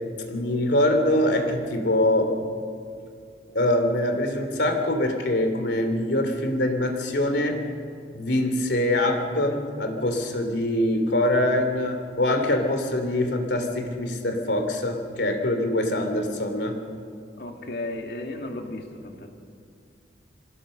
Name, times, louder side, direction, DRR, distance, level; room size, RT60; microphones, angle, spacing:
voice 1, 0.3-2.3 3.5-7.6 8.1-16.8, left 1 dB, 90° left, 5 dB, 2.8 m, -24 dB
voice 2, 17.4-19.3, left 2 dB, 65° left, 2 dB, 2.3 m, -34 dB
26.0 x 16.0 x 6.7 m, 2.3 s
head